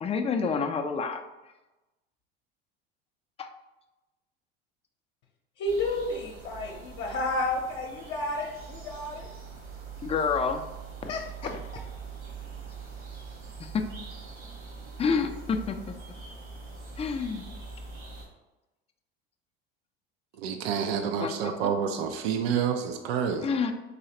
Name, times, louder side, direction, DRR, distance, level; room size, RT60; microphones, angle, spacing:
voice 1, 0.0-1.2 3.4-3.5 10.0-10.6 11.0-11.1 11.4-11.6 13.7-13.9 15.0-15.7 17.0-17.4 21.2-21.5 23.4-23.7, left 5 dB, 20° left, 5 dB, 0.4 m, -28 dB
voice 2, 5.6-9.3 11.1-11.2, left 2 dB, 55° left, -2 dB, 0.7 m, -31 dB
sound 1, 5.6-18.3, right 5 dB, 60° right, 1.2 m, -43 dB
voice 3, 20.4-23.6, right 7 dB, 75° right, 5 dB, 0.5 m, -28 dB
4.0 x 3.1 x 2.8 m, 1.1 s
hypercardioid pair, 80°, 30 cm